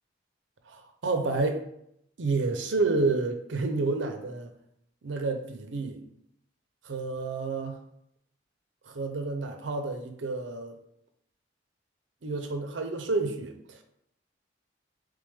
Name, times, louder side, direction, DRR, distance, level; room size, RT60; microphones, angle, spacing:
voice 1, 0.7-1.6 2.2-4.5 5.0-6.0 6.8-7.8 8.9-10.8 12.2-13.8, right 3 dB, 80° right, 5 dB, 0.6 m, -29 dB
3.5 x 3.4 x 3.4 m, 0.74 s
head